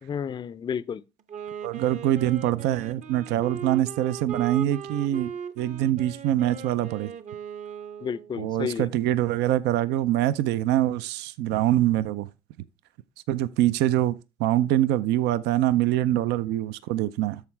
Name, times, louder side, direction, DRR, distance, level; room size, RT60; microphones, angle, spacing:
voice 1, 0.0-1.0 8.0-8.9 16.1-16.3, left 7 dB, 25° left, 0.4 m, -32 dB
Wind instrument woodwind instrument, 1.2-8.4, right 7 dB, 45° right, 0.8 m, -38 dB
voice 2, 1.6-5.3 5.6-7.1 8.4-12.3 13.3-17.4, right 13 dB, 90° right, 0.5 m, -24 dB
13.0 x 4.6 x 3.2 m
cardioid pair, 110°, 17 cm